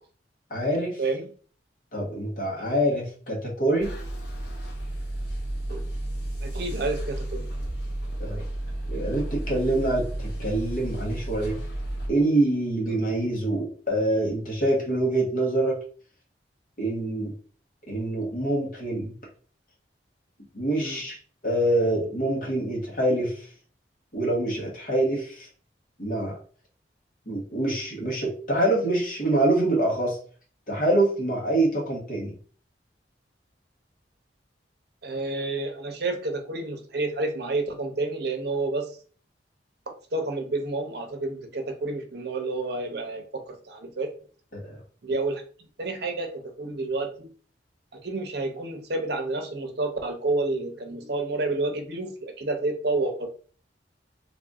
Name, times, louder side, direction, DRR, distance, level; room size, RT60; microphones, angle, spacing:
voice 1, 0.5-1.0 1.9-3.9 8.2-8.4 8.9-11.6 12.1-15.8 16.8-17.3 17.9-19.2 20.5-21.2 21.4-23.5 24.1-25.5 26.0-26.4 27.3-30.2 30.7-32.3 44.5-44.8, right 1 dB, 50° left, -2 dB, 1.4 m, -25 dB
sound 1, 3.8-12.1, right 1 dB, 70° left, 1.0 m, -32 dB
voice 2, 6.4-7.4 20.8-21.0 35.0-39.0 39.9-44.1 45.0-45.4 45.8-47.3 47.9-53.3, right 2 dB, 65° right, 4 dB, 0.8 m, -29 dB
3.5 x 2.6 x 3.6 m, 0.42 s
head